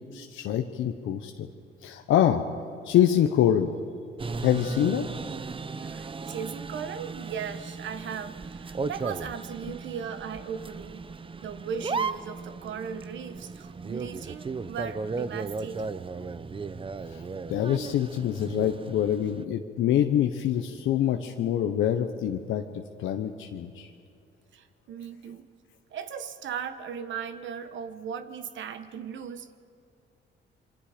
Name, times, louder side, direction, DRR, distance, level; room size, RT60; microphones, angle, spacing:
voice 1, 0.1-1.5 1.8-2.4 2.8-3.7 4.4-5.1 17.1-17.2 17.5-22.6 23.0-23.9, left 10 dB, 85° left, 5 dB, 1.0 m, -25 dB
sound 1, 4.2-19.4, right 4 dB, 25° right, 0.7 m, -36 dB
voice 2, 5.8-11.1 11.4-16.1 24.5-25.5 25.9-29.5, right 7 dB, 70° right, 10 dB, 1.3 m, -37 dB
27.0 x 23.5 x 5.1 m, 2.5 s
cardioid pair, 90°, 20 cm